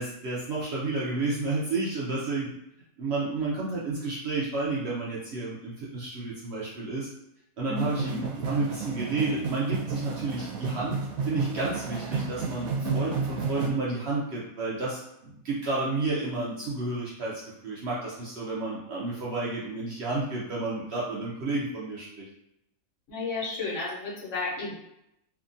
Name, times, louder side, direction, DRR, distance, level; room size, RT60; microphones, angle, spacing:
voice 1, 0.0-2.5 3.0-7.1 7.6-11.0 11.2-15.0 15.4-22.2, right 3 dB, 65° right, -6 dB, 0.7 m, -31 dB
voice 2, 7.7-8.2 11.9-12.0 12.8-13.0 23.1-24.8, left 3 dB, 65° left, -5 dB, 1.1 m, -33 dB
sound 1, 7.8-13.7, right 5 dB, 85° right, 1.0 m, -32 dB
2.7 x 2.3 x 2.5 m, 0.81 s
omnidirectional pair, 1.5 m